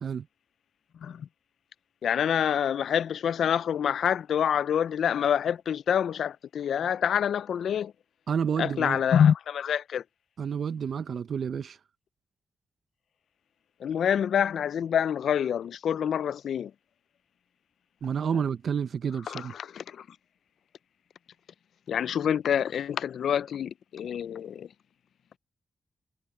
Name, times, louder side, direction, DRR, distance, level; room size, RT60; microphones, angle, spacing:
voice 1, 0.9-1.3 2.0-7.9 8.6-10.0 13.8-16.7 19.3-20.1 21.9-24.7, left 8 dB, 85° left, 0.3 m, -26 dB
voice 2, 8.3-9.0 10.4-11.8 18.0-19.5, right 7 dB, 70° right, 0.7 m, -30 dB
cardioid pair, 100°, 0 cm